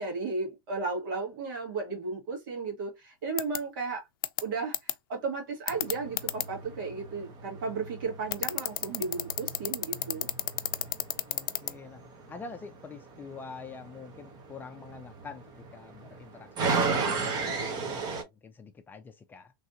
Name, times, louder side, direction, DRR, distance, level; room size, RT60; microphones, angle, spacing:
voice 1, 0.0-4.1 4.4-4.7 5.1-10.3, right 4 dB, 70° right, 1.7 m, -34 dB
sound 1, 3.4-3.6 4.2-4.4 4.7-4.9 5.7-6.4 8.3-11.7, left 13 dB, 80° left, 0.4 m, -29 dB
Scary Machine Startup, 5.7-18.2, right 4 dB, 35° right, 0.9 m, -36 dB
voice 2, 11.3-12.0 12.3-15.5 15.7-19.5, left 4 dB, 15° left, 0.5 m, -46 dB
3.2 x 2.5 x 2.8 m
supercardioid pair, 130°, 12 cm